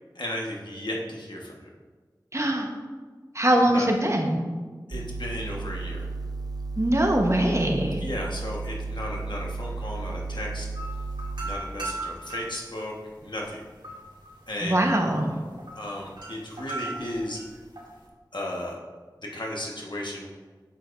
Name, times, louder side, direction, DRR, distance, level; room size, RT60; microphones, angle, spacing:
voice 1, 0.1-1.7 3.6-3.9 4.9-6.1 8.0-10.7 11.4-12.9 13.2-13.6 14.5-14.9 15.7-17.4 18.3-18.8 19.2-20.3, left 1 dB, 75° left, -2 dB, 1.3 m, -34 dB
voice 2, 2.3-2.7 3.3-4.4 6.8-8.0 14.6-15.4, right 1 dB, 40° right, 1 dB, 1.1 m, -22 dB
sound 1, 4.9-11.6, right 3 dB, 55° right, 0.5 m, -34 dB
sound 2, 10.7-18.1, right 2 dB, 75° right, 2.0 m, -39 dB
8.5 x 7.4 x 2.6 m, 1.4 s
wide cardioid pair, 40°, 8 cm